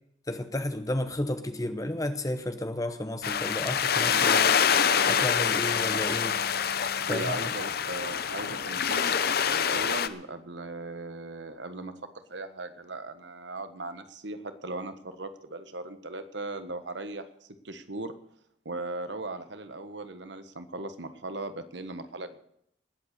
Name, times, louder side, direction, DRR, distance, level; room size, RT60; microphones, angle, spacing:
voice 1, 0.3-4.6 5.1-6.4 7.1-7.5, left 1 dB, 20° left, 9 dB, 0.9 m, -32 dB
sound 1, 3.2-10.1, left 7 dB, 55° left, 0.8 m, -26 dB
voice 2, 7.1-9.2 9.5-17.3 17.6-18.2 18.6-22.4, right 2 dB, 70° right, 10 dB, 1.4 m, -38 dB
19.5 x 8.2 x 6.6 m, 0.73 s
head